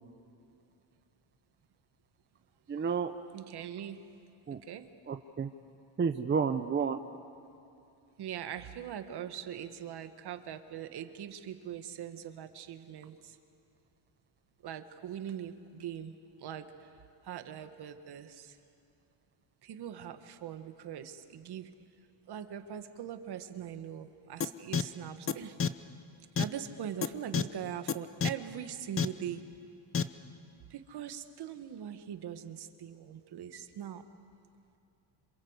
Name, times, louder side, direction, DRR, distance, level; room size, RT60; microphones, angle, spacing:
voice 1, 2.7-3.1 4.5-4.6 5.1-5.5 6.0-7.0, right 6 dB, 25° right, 7 dB, 0.9 m, -30 dB
voice 2, 3.3-4.1 4.5-4.9 8.2-13.4 14.6-18.6 19.6-21.7 22.3-25.6 26.3-29.5 30.7-34.0, right 9 dB, 55° right, 9 dB, 1.6 m, -42 dB
sound 1, 24.4-24.5 24.7-24.8 25.3-25.4 25.6-25.7 26.4-26.5 27.0-27.1 27.3-27.4 27.9-28.0 28.2-28.3 29.0-29.1 29.9-30.0, left 6 dB, 25° left, 0.8 m, -27 dB
27.0 x 27.0 x 8.1 m, 2.6 s
cardioid pair, 115°, 47 cm